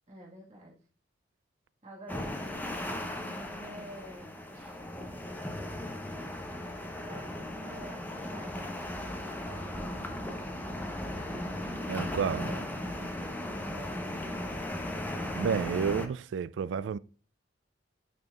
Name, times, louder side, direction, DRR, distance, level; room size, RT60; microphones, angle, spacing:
voice 1, 0.1-0.8 1.8-4.3 4.8-6.3 7.0-11.8 12.5-12.6 12.9-14.2, right 1 dB, 40° right, 1.6 m, -50 dB
sound 1, 2.1-16.1, left 1 dB, 10° left, 0.8 m, -37 dB
voice 2, 11.9-12.5 15.3-17.0, right 6 dB, 90° right, 0.3 m, -30 dB
9.2 x 4.3 x 2.4 m
head